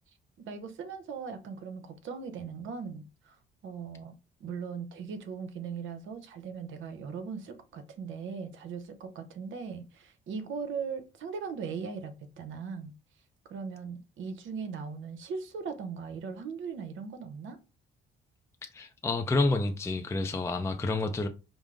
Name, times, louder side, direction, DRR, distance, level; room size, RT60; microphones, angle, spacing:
voice 1, 0.4-3.4 3.6-12.9 13.5-17.6, right 5 dB, 75° right, 0.9 m, -39 dB
voice 2, 18.7-21.3, left 2 dB, 15° left, 0.5 m, -29 dB
5.0 x 2.0 x 3.7 m
cardioid pair, 90°, 20 cm